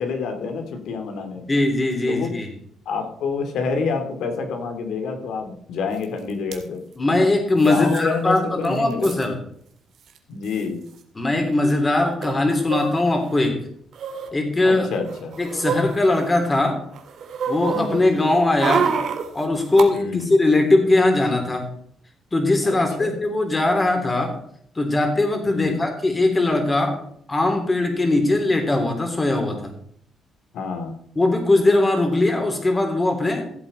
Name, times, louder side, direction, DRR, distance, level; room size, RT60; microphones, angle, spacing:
voice 1, 0.0-1.4 2.1-2.3 2.9-6.8 7.5-9.1 10.3-10.8 14.6-15.4 17.7-18.0 19.9-20.3 22.6-23.2 25.5-25.8 30.5-30.9, left 4 dB, 75° left, 5 dB, 2.5 m, -28 dB
voice 2, 1.5-2.5 7.0-9.4 11.1-13.6 14.3-14.9 15.4-16.8 17.5-18.9 19.3-21.7 22.3-24.4 24.7-27.0 27.3-29.7 31.1-33.5, left 2 dB, 20° left, 3 dB, 3.3 m, -20 dB
sound 1, 6.0-6.1 6.3-6.6 7.6-8.0 8.4-8.5 8.7-9.3 10.1-10.2 10.4-10.6 12.2-13.4 13.9-14.3 14.9-16.6 16.9-19.9 20.2-20.3, right 6 dB, 70° right, 1.9 m, -28 dB
15.5 x 7.9 x 4.2 m, 0.65 s
cardioid pair, 90°, 0 cm